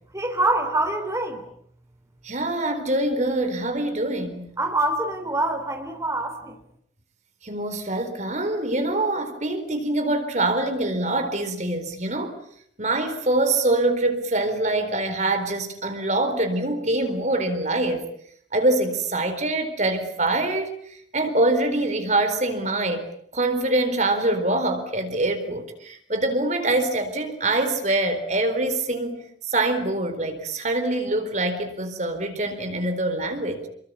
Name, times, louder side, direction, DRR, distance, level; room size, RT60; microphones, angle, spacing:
voice 1, 0.1-1.4 4.6-6.6, right 2 dB, 15° right, 4 dB, 3.7 m, -25 dB
voice 2, 2.2-4.6 7.4-12.3 12.8-18.1 18.5-20.7 21.1-23.1 23.3-29.2 29.5-33.7, right 2 dB, 40° right, 7 dB, 4.2 m, -24 dB
29.5 x 23.0 x 8.6 m, 0.69 s
head